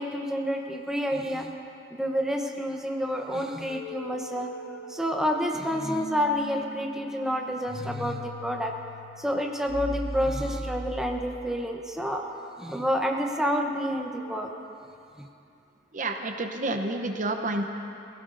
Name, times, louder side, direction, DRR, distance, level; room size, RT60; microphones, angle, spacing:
voice 1, 0.0-1.5 1.9-4.5 4.9-8.7 9.2-12.2 12.6-14.5 15.2-15.3, equal, 5° right, 1 dB, 0.8 m, -29 dB
sound 1, 3.7-11.5, equal, 30° left, 3.5 m, -39 dB
voice 2, 15.9-17.6, right 2 dB, 45° right, 5 dB, 0.7 m, -29 dB
21.5 x 16.0 x 2.6 m, 2.7 s
head